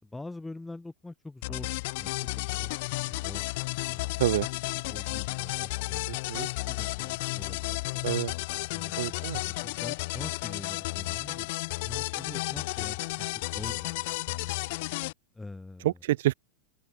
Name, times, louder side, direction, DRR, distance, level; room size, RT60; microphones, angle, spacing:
voice 1, 0.0-1.7 2.0-2.7 3.0-3.5 3.9-4.2 4.9-6.0 6.7-8.1 8.7-11.5 11.8-14.4 15.3-15.9, left 2 dB, 5° left, 4.4 m, -44 dB
sound 1, 1.4-15.1, left 23 dB, 50° left, 1.3 m, -33 dB
voice 2, 9.0-9.4 15.8-16.3, right 15 dB, 55° right, 2.0 m, -27 dB
open air
figure-of-eight pair, 90°, 0 cm